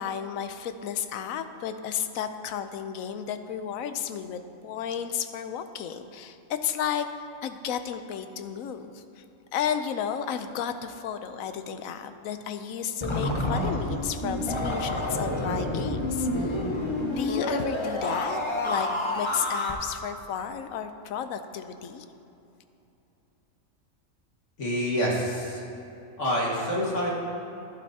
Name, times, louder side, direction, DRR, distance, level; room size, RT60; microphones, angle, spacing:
voice 1, 0.0-7.1 7.4-9.2 9.5-16.6 17.1-22.0, left 8 dB, 80° left, 9 dB, 1.0 m, -33 dB
sound 1, 13.0-19.7, left 1 dB, 25° left, 0.8 m, -28 dB
voice 2, 24.6-25.6 26.2-27.1, equal, 60° left, -4 dB, 2.1 m, -27 dB
11.5 x 11.5 x 2.8 m, 2.9 s
omnidirectional pair, 1.4 m